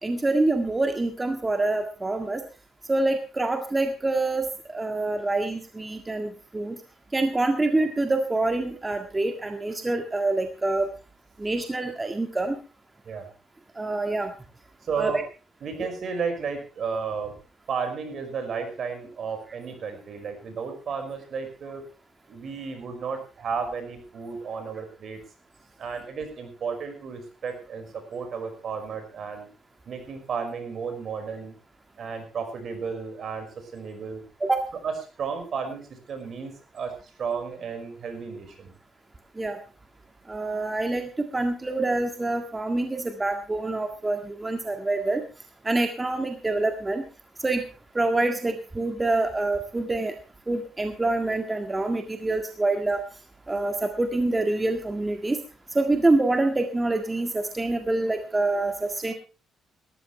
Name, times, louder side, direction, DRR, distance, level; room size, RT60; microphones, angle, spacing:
voice 1, 0.0-2.4 2.9-6.8 7.1-10.9 11.4-12.6 13.8-14.3 15.0-15.2 15.8-15.9 34.4-34.7 39.4-39.6 40.3-45.2 45.6-47.0 47.4-47.6 48.0-50.1 50.5-53.0 53.5-55.4 55.7-59.1, right 2 dB, 20° right, 5 dB, 1.8 m, -26 dB
voice 2, 14.8-15.2 15.6-17.4 17.7-21.8 22.3-25.2 25.8-29.5 29.9-31.6 32.0-34.2 34.8-38.7 59.1-59.2, right 5 dB, 55° right, 7 dB, 5.3 m, -33 dB
19.0 x 14.0 x 3.3 m, 0.32 s
cardioid pair, 90°, 0 cm